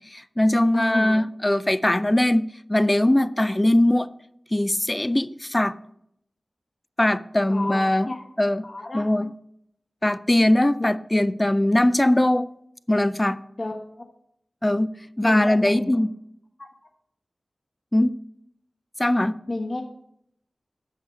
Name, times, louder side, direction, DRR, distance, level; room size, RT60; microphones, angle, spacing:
voice 1, 0.1-4.1 4.5-5.7 7.0-8.1 8.4-8.7 8.9-9.3 10.0-12.5 12.9-13.4 14.6-14.9 15.2-16.1 17.9-18.1 19.0-19.3, left 1 dB, 20° left, 0.4 m, -21 dB
voice 2, 0.7-1.2 7.4-7.8 8.0-8.3 8.6-9.1 10.8-10.9 13.6-14.0 15.2-15.9 16.6-16.7 19.5-19.8, left 2 dB, 45° left, 1.3 m, -30 dB
9.9 x 6.8 x 4.5 m
wide cardioid pair, 60°, 0 cm